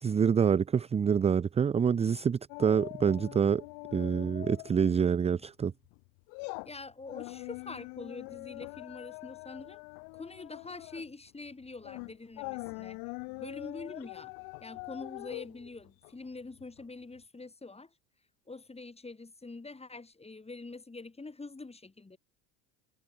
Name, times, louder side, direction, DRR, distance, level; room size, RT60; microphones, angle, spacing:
voice 1, 0.0-3.6 3.9-5.7, right 7 dB, 20° right, 0.4 m, -26 dB
sound 1, 2.5-4.9 5.2-5.4 5.9-16.8 17.2-17.3, left 37 dB, 75° left, 5.0 m, -43 dB
voice 2, 6.6-9.8 10.1-13.0 13.3-14.3 14.6-17.9 18.5-22.2, left 3 dB, 15° left, 6.4 m, -45 dB
hypercardioid pair, 80°, 37 cm